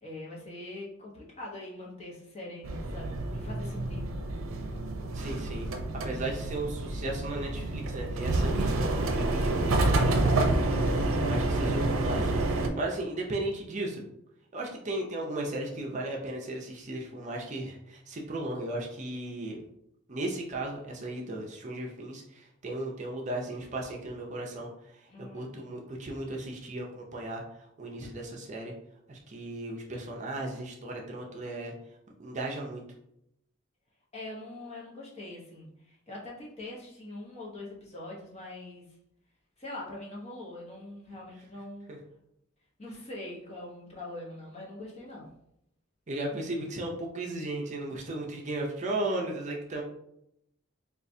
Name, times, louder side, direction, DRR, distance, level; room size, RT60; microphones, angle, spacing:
voice 1, 0.0-4.1 25.1-25.5 34.1-38.8 39.6-41.9 42.8-45.3, left 2 dB, 30° left, -3 dB, 0.9 m, -43 dB
sound 1, 2.6-12.7, right 2 dB, 85° right, 0.5 m, -28 dB
voice 2, 5.1-5.7 6.0-10.6 11.2-14.1 14.5-19.6 20.1-24.7 25.3-27.4 27.8-28.7 29.1-31.7 32.2-32.8 41.9-42.0 46.1-49.8, right 2 dB, 35° right, 0 dB, 0.5 m, -36 dB
4.4 x 2.4 x 2.6 m, 0.78 s
head